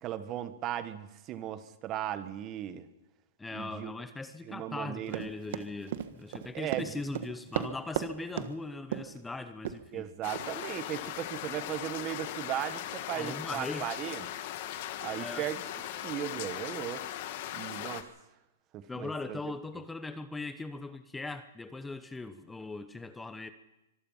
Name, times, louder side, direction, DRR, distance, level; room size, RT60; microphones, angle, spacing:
voice 1, 0.0-2.9 3.5-3.9 4.5-5.3 6.5-7.0 9.9-14.3 15.0-15.6 15.9-17.0 17.5-18.1 18.7-19.4, right 11 dB, 30° right, 12 dB, 1.4 m, -37 dB
voice 2, 3.4-10.1 13.2-13.9 15.2-15.5 18.9-23.5, left 3 dB, 10° left, 10 dB, 0.9 m, -40 dB
Run, 5.1-8.1 8.4-8.5 8.9-9.2 9.6-9.8 10.4-10.5, right 11 dB, 60° right, 1.4 m, -34 dB
sound 1, 10.2-18.0, left 12 dB, 50° left, 1.6 m, -39 dB
24.5 x 19.0 x 5.7 m, 0.96 s
hypercardioid pair, 135°, 0 cm